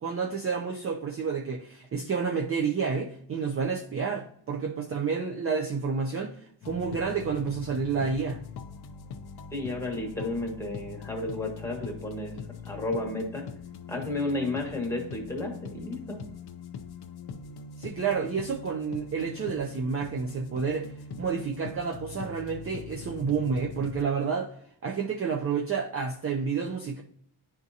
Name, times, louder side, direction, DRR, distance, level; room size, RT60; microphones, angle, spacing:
voice 1, 0.0-8.4 17.8-20.9 21.2-24.5 24.8-27.0, right 5 dB, 30° right, 1 dB, 0.4 m, -30 dB
sound 1, 6.6-24.0, left 5 dB, 55° left, 0.5 m, -42 dB
voice 2, 9.5-12.3 12.7-13.5 13.9-16.2, left 2 dB, 5° left, 0 dB, 1.2 m, -32 dB
10.0 x 3.6 x 2.7 m, 0.68 s
wide cardioid pair, 145°, 49 cm